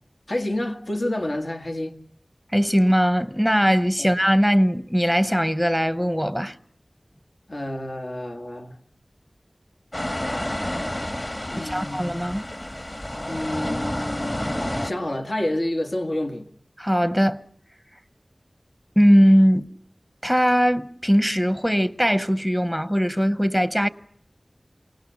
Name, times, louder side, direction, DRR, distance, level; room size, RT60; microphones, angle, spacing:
voice 1, 0.3-2.0 4.0-4.1 7.5-8.8 11.4-12.3 13.3-16.5, left 1 dB, 70° left, 1.9 m, -29 dB
voice 2, 2.5-6.5 11.7-12.4 16.8-17.4 19.0-19.7 20.2-23.9, equal, 5° left, 0.9 m, -20 dB
sound 1, 9.9-14.9, left 1 dB, 35° left, 2.1 m, -29 dB
28.5 x 19.0 x 6.9 m
wide cardioid pair, 50°, 0 cm